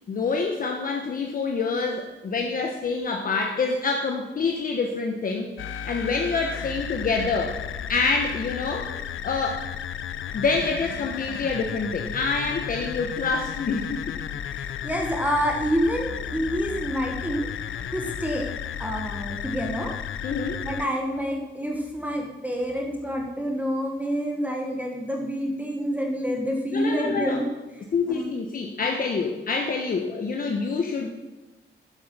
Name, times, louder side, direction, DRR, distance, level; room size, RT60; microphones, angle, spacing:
voice 1, 0.1-7.6 7.9-8.9 9.2-9.7 10.3-14.0 20.2-20.6 26.7-27.4 27.9-31.1, left 4 dB, 45° left, 2 dB, 1.1 m, -27 dB
sound 1, 5.6-20.9, left 9 dB, 90° left, 0.7 m, -33 dB
voice 2, 14.5-17.5 17.9-18.5 18.8-19.9 20.6-27.5 27.7-28.3, equal, 10° right, 0 dB, 1.2 m, -28 dB
11.0 x 7.7 x 6.8 m, 1.2 s
wide cardioid pair, 175°, 20 cm